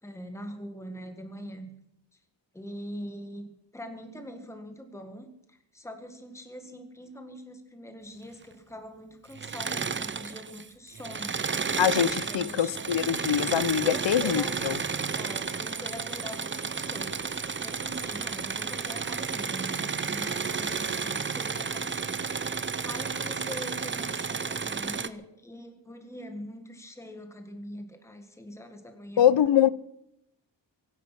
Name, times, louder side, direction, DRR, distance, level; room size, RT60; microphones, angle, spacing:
voice 1, 0.0-1.7 2.5-11.3 12.2-12.9 13.8-14.6 15.1-29.2, equal, 5° left, 1.7 m, -43 dB
Engine / Mechanisms, 9.3-10.7 10.9-25.1, right 5 dB, 25° right, 0.6 m, -32 dB
voice 2, 11.8-14.7 29.2-29.7, left 10 dB, 75° left, 0.8 m, -24 dB
24.5 x 9.8 x 6.0 m
wide cardioid pair, 145°, 44 cm